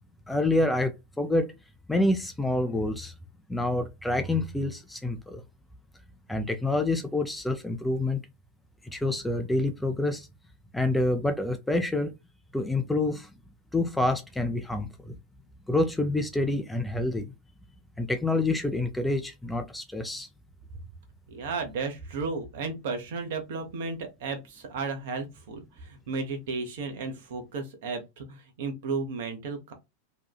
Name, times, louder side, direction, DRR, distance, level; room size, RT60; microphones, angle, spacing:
voice 1, 0.3-1.5 1.9-3.1 3.5-5.4 6.3-8.2 8.8-10.3 10.7-12.1 12.5-13.3 13.7-15.2 15.7-17.3 18.0-20.3, left 2 dB, 5° left, 0.4 m, -27 dB
voice 2, 21.3-29.7, right 4 dB, 55° right, 0.8 m, -34 dB
2.7 x 2.3 x 2.3 m
figure-of-eight pair, 90°, 0 cm